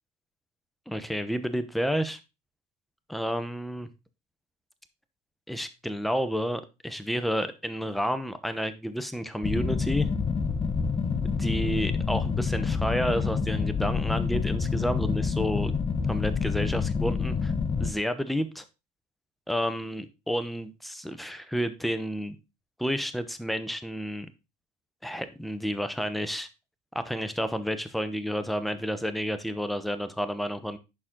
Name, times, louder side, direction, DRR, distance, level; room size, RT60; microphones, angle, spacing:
voice 1, 0.9-2.2 3.1-3.9 5.5-10.1 11.3-15.7 16.1-17.5 17.8-18.6 19.5-22.4 22.8-24.3 25.0-26.5 26.9-30.8, equal, ahead, 10 dB, 0.9 m, -30 dB
sound 1, 9.4-17.9, left 5 dB, 30° left, 1.0 m, -27 dB
11.0 x 4.3 x 3.7 m, 0.27 s
cardioid pair, 105°, 19 cm